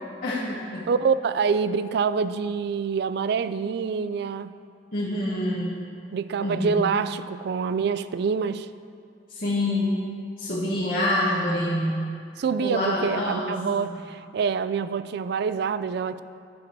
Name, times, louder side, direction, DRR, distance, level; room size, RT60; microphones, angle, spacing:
voice 1, 0.2-0.8 4.9-5.8 6.4-6.9 9.3-9.9 10.4-12.0 12.6-13.9, left 1 dB, 50° left, -6 dB, 1.3 m, -26 dB
voice 2, 0.9-4.5 6.1-8.7 12.4-16.2, right 5 dB, 65° right, 13 dB, 0.3 m, -26 dB
10.5 x 5.1 x 6.1 m, 2.4 s
head